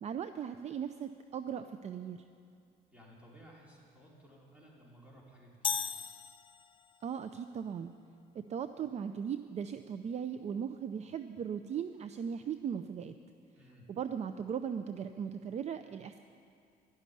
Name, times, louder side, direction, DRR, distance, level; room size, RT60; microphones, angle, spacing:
voice 1, 0.0-2.2 7.0-7.9 8.3-13.1 13.9-16.2, right 7 dB, 40° right, 10 dB, 0.5 m, -38 dB
voice 2, 2.9-5.8 13.5-13.9, equal, 5° right, -4 dB, 4.5 m, -57 dB
sound 1, 5.6-7.0, left 6 dB, 30° left, 0.4 m, -36 dB
12.0 x 12.0 x 10.0 m, 2.4 s
cardioid pair, 110°, 17 cm